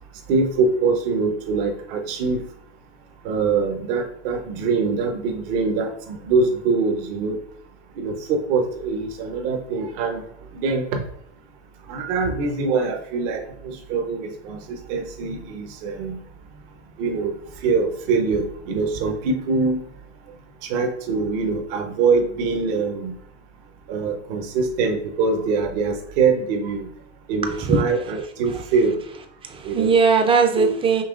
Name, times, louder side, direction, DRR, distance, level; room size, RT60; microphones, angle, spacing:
voice 1, 0.3-2.4 3.2-7.4 8.0-10.2 10.5-11.0 11.9-16.2 17.0-17.3 17.6-19.8 20.6-23.1 23.9-26.9 27.3-29.0 29.6-29.9 30.6-30.7, right 4 dB, 55° right, 4 dB, 1.0 m, -23 dB
voice 2, 27.4-27.8 29.4-31.0, right 5 dB, 15° right, 5 dB, 0.6 m, -19 dB
5.7 x 2.9 x 2.5 m, 0.69 s
hypercardioid pair, 115°, 34 cm